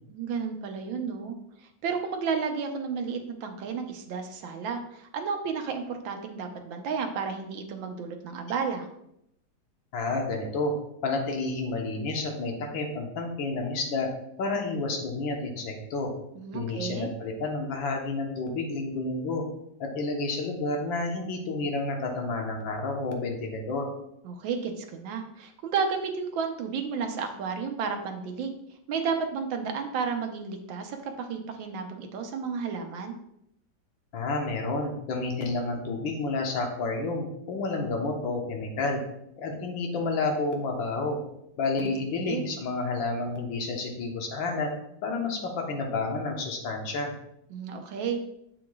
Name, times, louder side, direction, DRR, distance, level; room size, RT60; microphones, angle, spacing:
voice 1, 0.1-8.9 16.3-17.1 24.2-28.5 28.9-33.1 41.8-41.9 42.2-42.5 47.5-48.2, right 5 dB, 80° right, 5 dB, 1.5 m, -32 dB
voice 2, 9.9-10.7 11.0-14.1 14.4-16.1 16.5-19.4 19.8-23.9 34.1-39.0 39.4-41.2 41.6-44.7 45.0-47.1, left 3 dB, 90° left, 2 dB, 1.8 m, -30 dB
7.5 x 5.8 x 2.3 m, 0.77 s
omnidirectional pair, 2.1 m